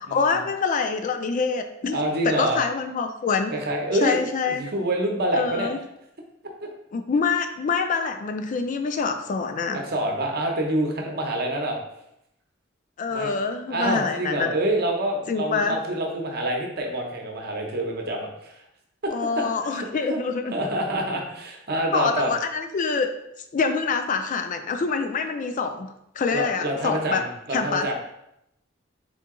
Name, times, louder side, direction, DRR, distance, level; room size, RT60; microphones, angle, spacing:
voice 1, 0.1-2.0 2.2-3.5 4.0-4.7 5.3-5.8 6.9-9.8 13.0-14.5 15.3-15.8 19.1-20.5 21.9-23.1 23.5-27.2 27.5-27.9, left 5 dB, 40° left, 7 dB, 0.3 m, -25 dB
voice 2, 1.9-2.6 3.5-4.2 4.5-5.7 9.7-11.8 13.1-13.4 13.7-18.5 19.0-20.2 20.5-22.3 26.3-27.9, right 1 dB, 55° right, 1 dB, 0.7 m, -27 dB
3.8 x 2.8 x 3.6 m, 0.80 s
head